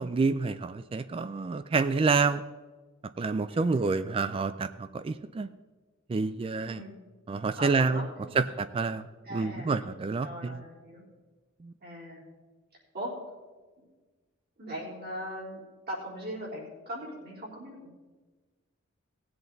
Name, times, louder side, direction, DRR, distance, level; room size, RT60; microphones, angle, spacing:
voice 1, 0.0-2.4 3.2-5.5 6.1-6.8 7.3-8.1 8.3-10.6 11.6-11.7, right 4 dB, 25° right, 12 dB, 0.3 m, -28 dB
voice 2, 3.5-4.1 6.6-7.0 7.4-8.5 9.2-9.8 10.2-11.0 11.8-12.2 12.9-13.1 13.8-13.9 14.6-15.6 15.9-17.9, equal, 50° right, -5 dB, 4.0 m, -40 dB
18.0 x 7.8 x 3.9 m, 1.3 s
head